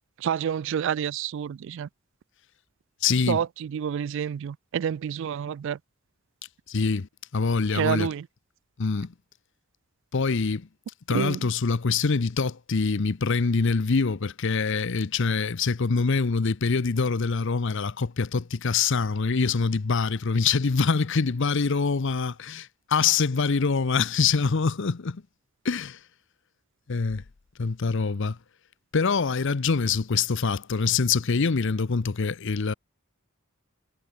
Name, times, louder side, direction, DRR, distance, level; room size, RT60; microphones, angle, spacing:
voice 1, 0.2-1.9 3.3-5.8 7.7-8.3 11.1-11.5, right 8 dB, 60° right, 0.3 m, -28 dB
voice 2, 3.0-3.4 6.7-8.1 8.8-9.1 10.1-10.7 11.1-25.2 25.6-26.0 26.9-27.2 27.6-28.4 28.9-32.7, left 4 dB, 60° left, 0.7 m, -25 dB
head